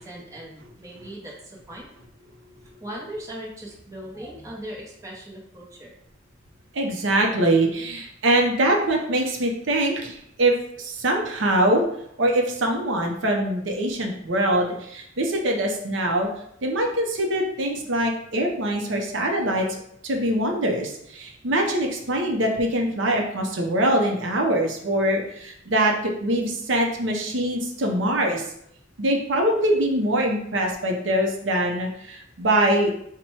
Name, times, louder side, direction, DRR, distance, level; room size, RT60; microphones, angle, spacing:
voice 1, 0.0-1.9 2.8-5.9, right 1 dB, 15° right, -3 dB, 0.7 m, -39 dB
voice 2, 6.7-11.8 12.2-16.3 16.6-19.8 20.0-28.5 29.0-32.9, right 1 dB, 70° right, 2 dB, 0.6 m, -23 dB
4.1 x 2.2 x 4.5 m, 0.71 s
head